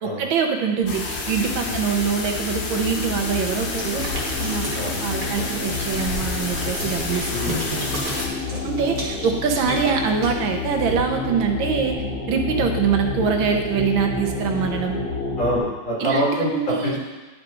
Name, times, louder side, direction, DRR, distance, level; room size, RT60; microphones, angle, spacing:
voice 1, 0.0-4.7 5.0-7.9 8.6-15.0 16.0-17.0, right 6 dB, 85° right, 4 dB, 1.6 m, -24 dB
sound 1, 0.8-15.6, left 4 dB, 35° left, 1.7 m, -30 dB
sound 2, 0.9-8.3, left 3 dB, 50° left, 0.8 m, -30 dB
sound 3, 3.8-10.9, right 1 dB, 45° right, 1.9 m, -34 dB
voice 2, 7.3-7.6 8.5-8.7 12.5-12.7 15.4-17.0, equal, 70° left, -7 dB, 3.1 m, -25 dB
10.5 x 4.8 x 3.8 m, 1.2 s
omnidirectional pair, 2.1 m